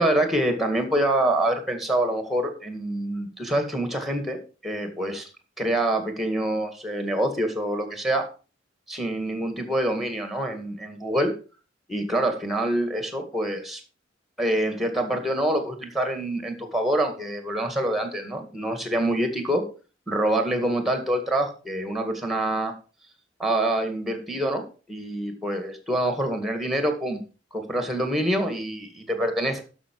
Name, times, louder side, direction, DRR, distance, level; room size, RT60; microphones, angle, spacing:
voice 1, 0.0-5.3 5.6-8.3 8.9-11.3 11.9-13.8 14.4-19.7 20.1-22.7 23.4-27.2 27.5-29.6, right 1 dB, ahead, 6 dB, 2.0 m, -26 dB
12.0 x 6.0 x 4.7 m, 0.35 s
head